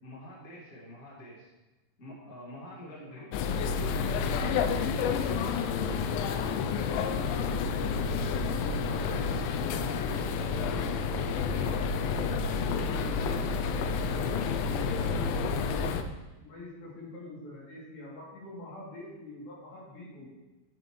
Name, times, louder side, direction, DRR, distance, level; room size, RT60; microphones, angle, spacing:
voice 1, 0.0-1.5 2.0-3.4 3.7-4.0 4.4-6.0 6.9-7.2 8.4-10.8 11.1-11.8 12.1-15.3, equal, 40° left, -5 dB, 1.2 m, -47 dB
voice 2, 2.8-3.6 13.0-13.2 16.4-20.3, left 2 dB, 65° left, -7 dB, 5.0 m, -46 dB
sound 1, 3.3-16.0, left 5 dB, 80° left, 2.9 m, -29 dB
10.5 x 7.4 x 3.2 m, 1.1 s
omnidirectional pair, 5.5 m